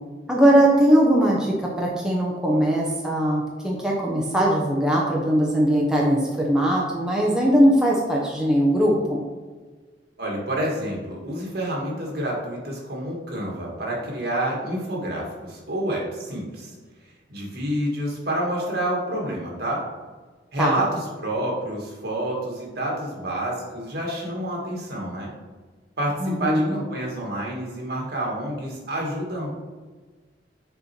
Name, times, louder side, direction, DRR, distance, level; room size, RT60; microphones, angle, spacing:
voice 1, 0.3-9.2 20.6-20.8 26.2-26.8, equal, 5° right, -3 dB, 0.9 m, -20 dB
voice 2, 10.2-16.7 17.3-19.8 20.5-25.3 26.0-29.5, right 1 dB, 60° right, -2 dB, 1.9 m, -28 dB
6.8 x 4.3 x 4.5 m, 1.4 s
head